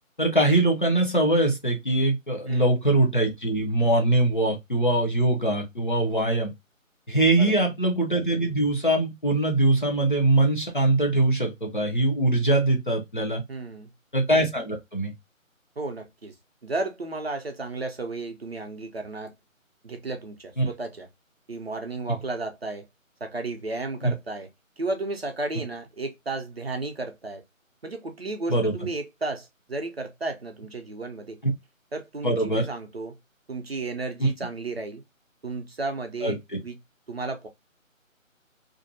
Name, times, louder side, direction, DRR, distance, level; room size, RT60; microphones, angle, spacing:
voice 1, 0.2-6.5 7.1-13.4 14.1-15.1 20.6-20.7 24.0-24.1 28.5-28.7 32.2-32.7 34.2-34.3 36.2-36.4, right 2 dB, 40° left, 0.6 m, -22 dB
voice 2, 7.4-7.7 13.5-13.9 15.8-16.3 16.6-19.3 19.8-21.1 21.5-22.9 23.2-24.5 24.8-27.4 27.8-31.4 31.9-33.2 33.5-35.0 35.4-36.8 37.1-37.5, right 3 dB, 50° right, 0.5 m, -33 dB
2.5 x 2.1 x 2.6 m
figure-of-eight pair, 160°, 41 cm